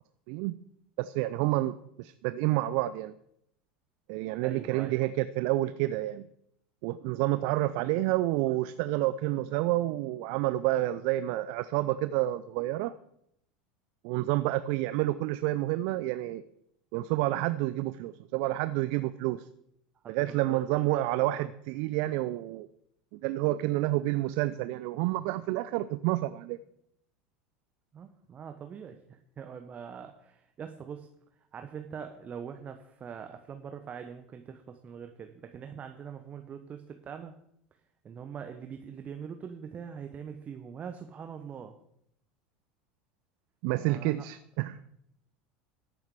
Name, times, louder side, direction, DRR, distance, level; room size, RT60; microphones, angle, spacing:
voice 1, 1.0-3.1 4.1-6.3 6.8-12.9 14.0-16.4 16.9-19.5 20.1-22.7 23.1-26.6 43.6-44.8, right 16 dB, 60° right, 14 dB, 0.5 m, -29 dB
voice 2, 4.4-5.0 20.0-20.6 20.9-21.3 27.9-31.1 31.5-37.4 38.0-41.8 43.8-44.2, right 7 dB, 35° right, 7 dB, 1.0 m, -43 dB
14.0 x 7.2 x 4.8 m, 0.74 s
hypercardioid pair, 80°, 5 cm